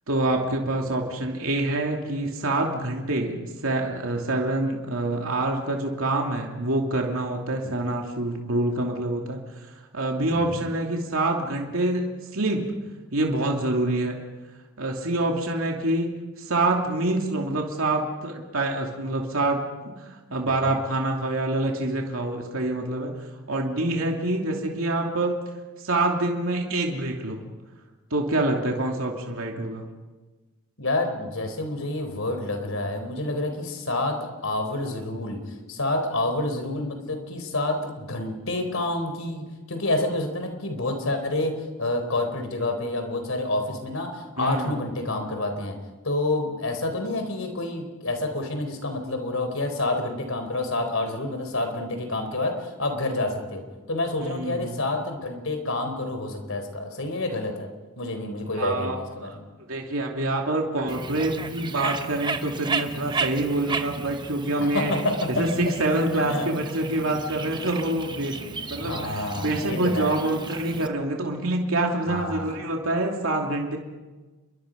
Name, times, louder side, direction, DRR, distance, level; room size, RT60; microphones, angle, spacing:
voice 1, 0.1-12.0 12.3-12.6 13.1-14.2 14.8-16.1 16.4-19.6 20.0-25.4 25.8-27.4 28.1-29.8 44.4-45.0 54.2-54.8 58.6-59.0 59.2-59.4 59.7-64.9 65.3-73.8, right 2 dB, 70° right, 1 dB, 2.8 m, -26 dB
voice 2, 10.3-10.7 20.7-20.8 30.8-34.2 34.4-35.4 35.7-41.5 41.8-45.8 46.0-53.6 53.9-57.7 58.0-59.4 64.7-65.3 66.1-66.5 68.8-70.1 72.0-72.6, left 2 dB, 65° left, 6 dB, 4.2 m, -28 dB
Bird, 60.9-70.9, right 4 dB, 20° right, 1.0 m, -34 dB
28.5 x 23.0 x 5.3 m, 1.2 s
head